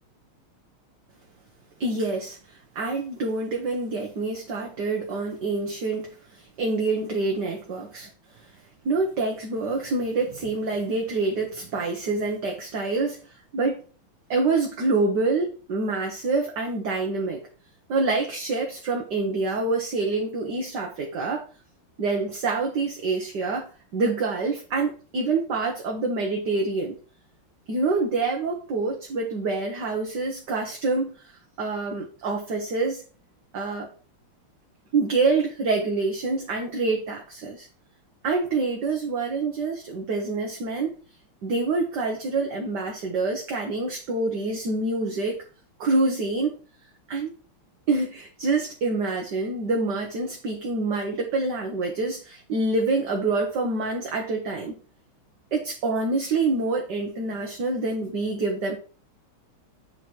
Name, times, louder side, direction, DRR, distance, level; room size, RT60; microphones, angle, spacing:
voice 1, 1.8-8.1 8.9-13.3 13.5-13.8 14.3-17.4 17.9-21.5 22.0-27.0 27.7-31.3 31.6-33.0 33.5-33.9 34.9-37.7 38.2-40.9 41.4-45.4 45.8-46.6 47.1-47.3 47.9-54.8 55.5-58.8, right 3 dB, 55° right, 0 dB, 1.9 m, -26 dB
8.7 x 4.7 x 4.5 m, 0.36 s
omnidirectional pair, 2.4 m